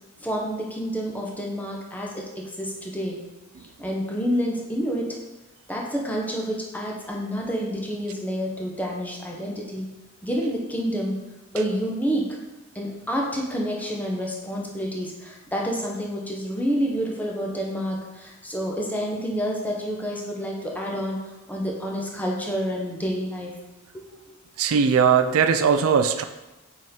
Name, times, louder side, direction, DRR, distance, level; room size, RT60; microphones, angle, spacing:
voice 1, 0.2-3.2 3.8-5.2 5.7-9.9 10.2-11.1 11.5-12.3 12.7-21.2 21.5-23.5 23.9-24.4, equal, 10° left, -2 dB, 0.9 m, -28 dB
voice 2, 24.6-26.2, right 6 dB, 90° right, 9 dB, 0.4 m, -19 dB
6.0 x 3.8 x 4.3 m, 1.0 s
head